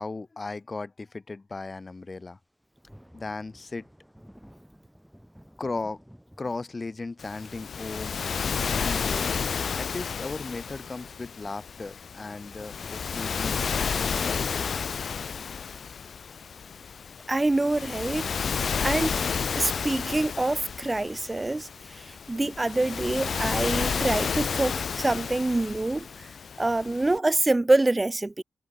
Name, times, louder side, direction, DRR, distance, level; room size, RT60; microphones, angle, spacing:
voice 1, 0.0-2.4 3.1-3.8 5.6-6.0 6.4-8.2 8.6-9.3 9.8-14.7, left 3 dB, 30° left, 1.2 m, -36 dB
sound 1, 2.1-2.2 2.4-13.5, equal, ahead, 7.5 m, -56 dB
Waves surf, 7.2-27.2, left 6 dB, 55° left, 2.1 m, -31 dB
voice 2, 17.3-18.3 18.8-19.2 19.5-26.1 26.6-28.4, right 2 dB, 15° right, 0.9 m, -26 dB
wide cardioid pair, 125°, 0 cm